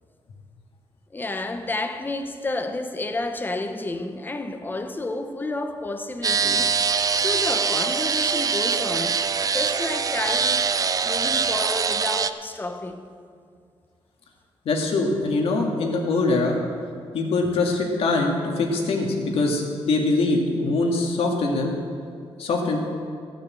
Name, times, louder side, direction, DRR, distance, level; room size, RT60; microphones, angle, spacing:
voice 1, 1.1-10.7 11.0-13.1, left 2 dB, 20° left, 0.9 m, -31 dB
sound 1, 6.2-12.3, right 6 dB, 40° right, 0.4 m, -23 dB
voice 2, 14.7-16.6 17.1-21.7 22.4-22.9, left 3 dB, 75° left, 2.0 m, -23 dB
14.0 x 6.8 x 8.3 m
cardioid pair, 110°, 10 cm